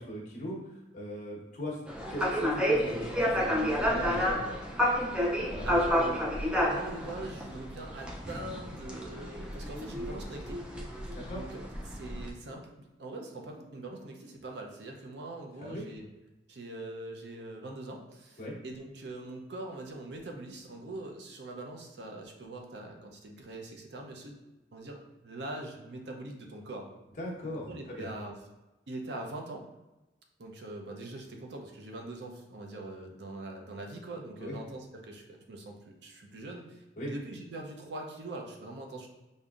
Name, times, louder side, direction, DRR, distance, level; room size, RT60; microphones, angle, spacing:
voice 1, 0.0-1.8 2.1-4.6 5.5-5.8 11.1-11.4 15.6-15.8 18.4-18.6 27.2-28.1 34.4-34.6 37.0-37.1, left 1 dB, 40° left, -4 dB, 1.0 m, -39 dB
sound 1, 1.9-12.3, equal, 5° right, 0.3 m, -30 dB
voice 2, 5.6-6.2 6.5-10.6 11.3-16.0 16.5-24.3 24.7-26.9 27.4-28.4 28.9-29.7 30.4-39.1, right 2 dB, 65° right, 1 dB, 0.5 m, -43 dB
5.1 x 2.7 x 2.4 m, 1.0 s
head